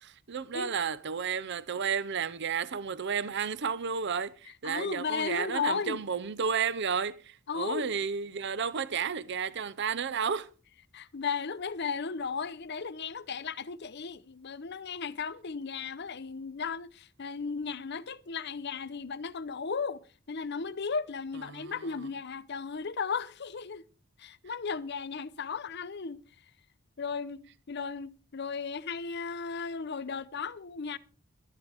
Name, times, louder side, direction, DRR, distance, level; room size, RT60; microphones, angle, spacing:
voice 1, 0.0-10.5 21.5-21.7, right 6 dB, 55° right, 0.6 m, -32 dB
voice 2, 4.6-6.0 7.5-7.9 10.9-20.0 20.3-23.8 24.2-26.2 27.0-31.0, left 5 dB, 50° left, 0.7 m, -35 dB
18.5 x 12.5 x 3.4 m
head